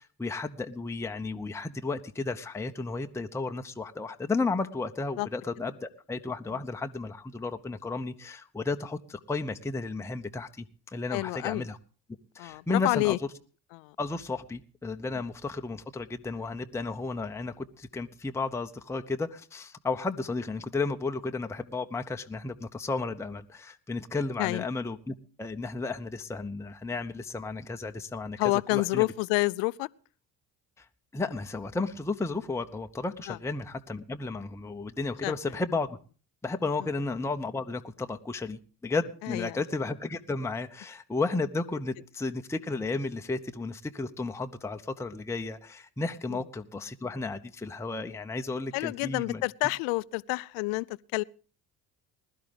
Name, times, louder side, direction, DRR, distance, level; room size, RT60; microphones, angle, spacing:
voice 1, 0.0-11.8 12.3-13.2 14.0-28.4 28.7-29.0 30.8-30.9 31.1-36.0 36.4-49.4, left 3 dB, 5° left, 0.8 m, -33 dB
voice 2, 11.1-11.7 12.4-13.2 13.7-14.0 24.4-24.6 28.4-29.9 33.3-33.4 35.2-35.3 39.2-39.6 46.3-46.4 48.7-51.2, left 25 dB, 65° left, 0.6 m, -29 dB
20.5 x 12.0 x 3.5 m
hypercardioid pair, 50°, 49 cm